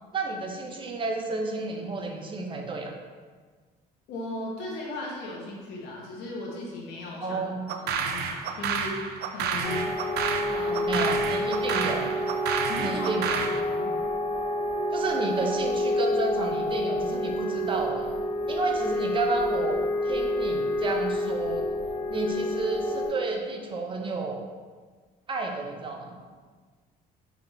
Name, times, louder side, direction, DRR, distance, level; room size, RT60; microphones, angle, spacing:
voice 1, 0.1-2.9 7.2-7.7 10.9-12.1 12.8-13.4 14.9-18.1 18.5-21.7 22.1-24.4 25.3-26.1, right 3 dB, 30° right, 2 dB, 0.6 m, -31 dB
voice 2, 4.1-7.4 7.8-9.9 10.5-11.1 12.7-13.9, left 2 dB, 85° left, -3 dB, 1.0 m, -37 dB
sound 1, 7.7-13.6, right 6 dB, 75° right, 0.4 m, -30 dB
sound 2, 9.6-23.1, left 1 dB, 30° left, 1.2 m, -28 dB
5.0 x 2.5 x 3.1 m, 1.5 s
cardioid pair, 110°, 17 cm